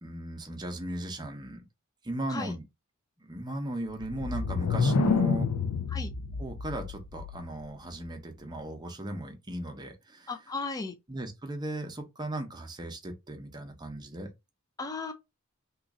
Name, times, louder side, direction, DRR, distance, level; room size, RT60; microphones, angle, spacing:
voice 1, 0.0-1.6 2.0-2.6 3.2-5.7 6.4-10.3 11.1-14.3, right 1 dB, 20° right, 0.7 m, -37 dB
sound 1, 3.9-7.7, left 4 dB, 85° left, 0.4 m, -29 dB
voice 2, 10.3-10.9 14.8-15.1, left 3 dB, 15° left, 0.3 m, -35 dB
3.0 x 2.4 x 3.6 m
head